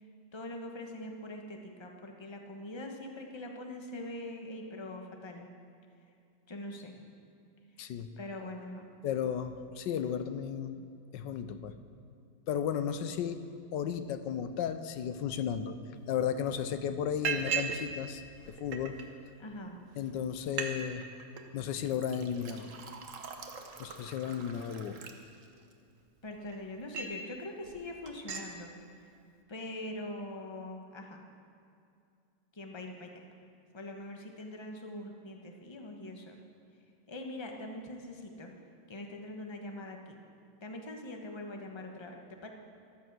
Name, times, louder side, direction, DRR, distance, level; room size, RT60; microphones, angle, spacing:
voice 1, 0.3-5.5 6.5-7.0 8.2-8.9 19.4-19.8 26.2-28.7 29.5-31.2 32.5-33.2 33.7-36.4 37.1-38.5 38.9-40.2 40.6-42.5, left 1 dB, 15° left, 3 dB, 1.1 m, -43 dB
voice 2, 7.8-8.1 9.0-10.9 11.1-11.8 12.5-13.4 13.7-15.8 16.1-19.0 20.0-21.1 21.5-22.7 23.8-25.0, left 8 dB, 90° left, 11 dB, 1.4 m, -34 dB
Liquid, 16.1-16.2 16.5-16.8 17.2-17.8 18.1-19.0 19.7-19.8 20.1-20.2 20.4-20.7 21.0-21.4 21.9-25.7 26.2-27.2 27.6-27.8 28.1-28.5, right 6 dB, 50° right, 1.3 m, -39 dB
14.5 x 12.0 x 6.1 m, 2.5 s
omnidirectional pair, 1.9 m